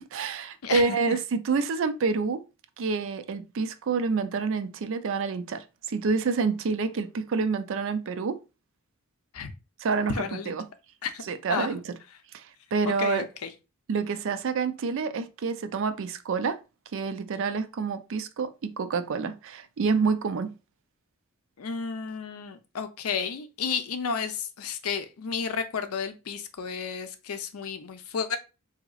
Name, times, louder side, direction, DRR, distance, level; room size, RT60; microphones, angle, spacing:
voice 1, 0.1-2.4 2.8-8.4 9.8-10.6 11.3-11.9 12.3-12.4 12.7-13.2 13.9-16.6 16.9-20.5, right 5 dB, 65° right, 0.4 m, -28 dB
voice 2, 0.6-1.2 9.3-9.5 10.1-10.6 11.0-11.2 11.5-11.7 12.9-13.5 21.6-28.4, left 6 dB, 85° left, 0.5 m, -32 dB
3.9 x 2.8 x 2.3 m
head